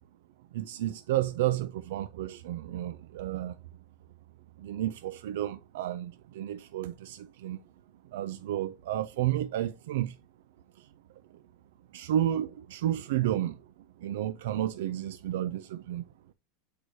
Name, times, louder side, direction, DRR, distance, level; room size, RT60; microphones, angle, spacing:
voice 1, 0.5-3.5 4.6-7.6 8.1-10.2 11.9-13.6 14.0-16.0, right 12 dB, 85° right, 0.4 m, -31 dB
7.8 x 4.7 x 2.7 m
supercardioid pair, 170°, 0 cm